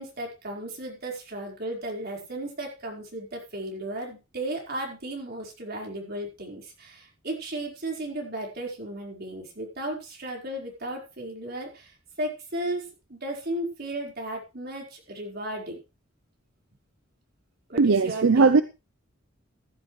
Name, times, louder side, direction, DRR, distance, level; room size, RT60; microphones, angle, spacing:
voice 1, 0.0-11.9 12.2-12.8 13.1-15.8 17.7-18.5, right 1 dB, 50° right, 4.6 m, -35 dB
voice 2, 17.8-18.6, right 4 dB, 80° right, 0.6 m, -18 dB
15.0 x 11.5 x 3.2 m
head